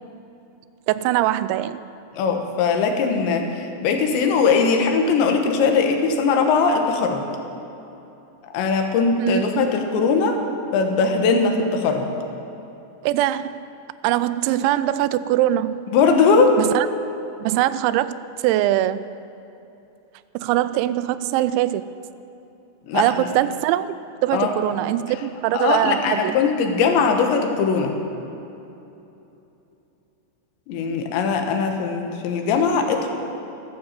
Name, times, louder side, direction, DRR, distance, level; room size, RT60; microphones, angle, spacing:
voice 1, 0.9-1.8 9.2-9.7 13.0-13.7 14.0-15.9 16.6-16.9 17.4-19.1 20.3-21.9 22.9-24.0 24.2-26.3, right 13 dB, 90° right, 15 dB, 2.9 m, -22 dB
voice 2, 2.1-7.3 8.5-10.4 10.7-12.1 15.9-16.6 22.9-23.3 24.3-24.5 25.5-27.9 30.7-33.1, left 5 dB, 80° left, 4 dB, 3.5 m, -20 dB
15.0 x 12.5 x 7.4 m, 2.9 s
omnidirectional pair, 5.2 m